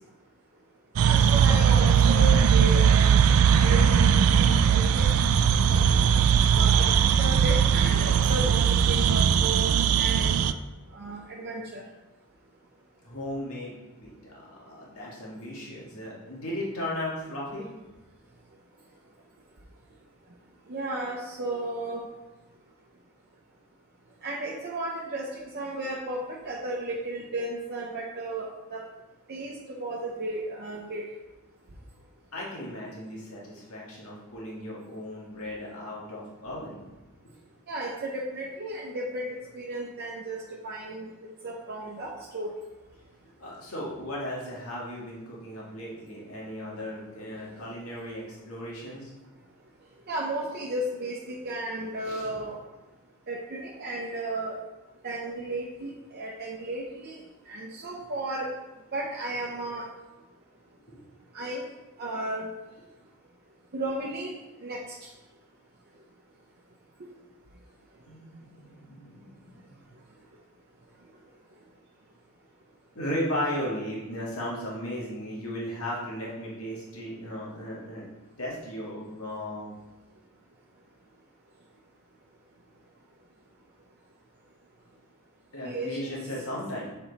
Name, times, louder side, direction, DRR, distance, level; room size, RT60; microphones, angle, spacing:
voice 1, 1.0-3.3 3.6-5.1 5.5-5.8 6.5-10.5 10.9-11.8 20.7-22.0 24.2-28.8 29.3-31.0 37.7-39.3 39.5-41.1 41.4-42.5 50.1-52.6 53.3-54.6 55.0-57.2 57.5-58.5 58.9-59.8 61.3-61.6 62.0-62.5 63.7-64.3 64.6-64.8 85.6-86.1, right 1 dB, 50° right, -3 dB, 0.8 m, -34 dB
sound 1, 1.0-10.5, right 7 dB, 75° right, 0.3 m, -20 dB
voice 2, 13.0-13.8 14.0-17.7 32.3-36.8 43.4-49.1 52.0-52.3 60.9-61.0 68.1-69.8 72.9-78.1 78.4-79.7 85.5-86.9, left 1 dB, 90° left, -5 dB, 1.9 m, -36 dB
6.9 x 4.3 x 4.1 m, 1.1 s
head